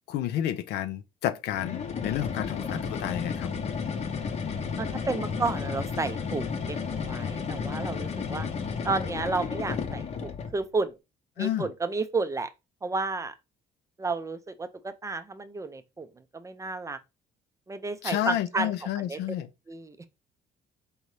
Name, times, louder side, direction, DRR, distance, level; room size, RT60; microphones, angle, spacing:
voice 1, 0.1-3.5 11.4-11.7 18.0-19.5, left 12 dB, 80° left, 0.5 m, -30 dB
sound 1, 1.5-10.6, left 6 dB, 40° left, 0.8 m, -32 dB
voice 2, 4.8-8.5 8.8-10.9 11.4-12.5 12.8-13.3 14.0-16.1 16.3-17.0 17.7-19.2 19.7-20.0, right 3 dB, 20° right, 0.4 m, -32 dB
4.6 x 2.6 x 3.2 m
cardioid pair, 110°, 17 cm